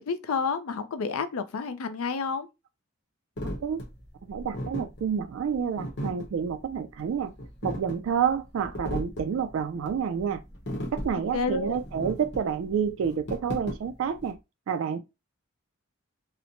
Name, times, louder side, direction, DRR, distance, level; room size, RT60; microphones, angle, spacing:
voice 1, 0.0-2.5 11.3-11.8, left 5 dB, 85° left, 0.4 m, -30 dB
sound 1, 3.4-14.3, equal, 55° left, 0.8 m, -37 dB
voice 2, 4.2-7.3 7.6-10.4 10.9-14.4 14.7-15.0, right 7 dB, 65° right, 0.3 m, -29 dB
2.9 x 2.1 x 2.5 m
head